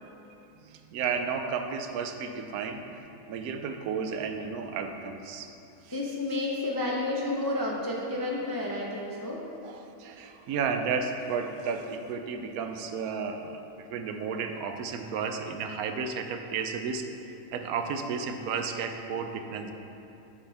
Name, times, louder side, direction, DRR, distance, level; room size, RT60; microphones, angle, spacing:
voice 1, 0.6-5.5 5.8-6.0 7.6-7.7 9.6-19.7, right 5 dB, 80° right, 6 dB, 1.1 m, -33 dB
voice 2, 5.9-9.4, left 2 dB, 30° left, -3 dB, 0.4 m, -31 dB
9.2 x 6.8 x 3.5 m, 2.8 s
omnidirectional pair, 1.5 m